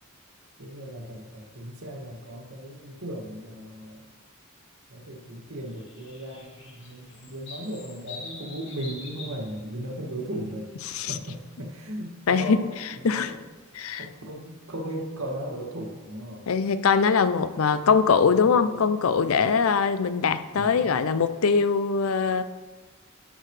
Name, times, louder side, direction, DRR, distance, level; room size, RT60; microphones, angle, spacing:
voice 1, 0.6-4.1 4.9-10.7 11.1-12.6 12.9-13.4 14.0-16.5 18.3-18.9 20.5-20.9, right 1 dB, 90° right, -1 dB, 2.1 m, -37 dB
sound 1, 5.7-10.8 11.1-11.5 12.7-14.0, left 3 dB, 55° left, 2.1 m, -45 dB
voice 2, 10.8-11.2 12.3-13.3 13.7-14.1 16.5-22.4, left 5 dB, 80° left, 12 dB, 0.5 m, -22 dB
12.0 x 6.6 x 3.3 m, 1.4 s
head